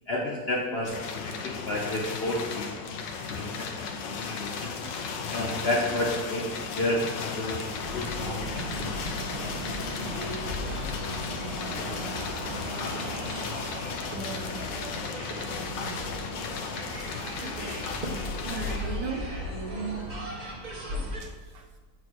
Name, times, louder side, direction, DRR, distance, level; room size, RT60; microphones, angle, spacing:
voice 1, 0.1-3.0 3.3-6.5 6.7-9.2 19.8-19.9, left 1 dB, 50° left, -2 dB, 0.7 m, -32 dB
sound 1, 0.8-20.3, left 5 dB, 90° left, 1.4 m, -35 dB
sound 2, 7.8-21.2, right 1 dB, 30° right, 0.9 m, -36 dB
voice 2, 14.1-14.6 17.3-17.7 18.5-19.3 21.2-21.6, right 5 dB, 70° right, 3 dB, 1.4 m, -38 dB
7.7 x 3.2 x 6.0 m, 1.5 s
omnidirectional pair, 1.9 m